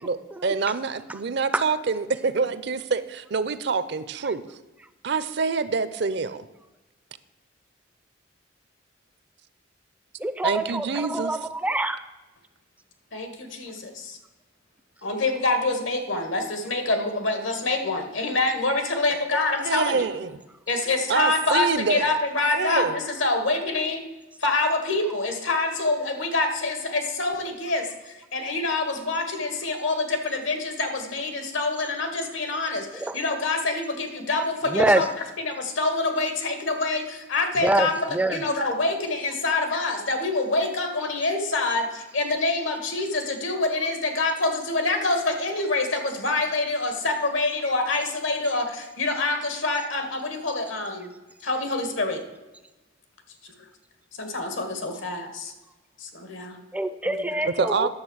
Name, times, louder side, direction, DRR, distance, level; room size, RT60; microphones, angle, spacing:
voice 1, 0.0-4.4 5.0-6.5 10.4-11.4 19.6-20.4 21.1-22.2 22.5-23.0 57.5-57.9, right 4 dB, 60° right, 14 dB, 0.6 m, -26 dB
voice 2, 10.2-12.0 33.0-33.2 34.7-35.0 37.6-38.4 56.7-57.9, right 1 dB, 5° right, 11 dB, 0.4 m, -25 dB
voice 3, 13.1-14.2 15.0-20.1 20.7-24.0 24.4-35.1 35.4-38.0 38.3-51.1 51.4-52.2 54.2-55.5 56.0-56.6 57.0-57.4, left 2 dB, 80° left, 6 dB, 1.7 m, -26 dB
10.5 x 7.1 x 6.3 m, 1.1 s
head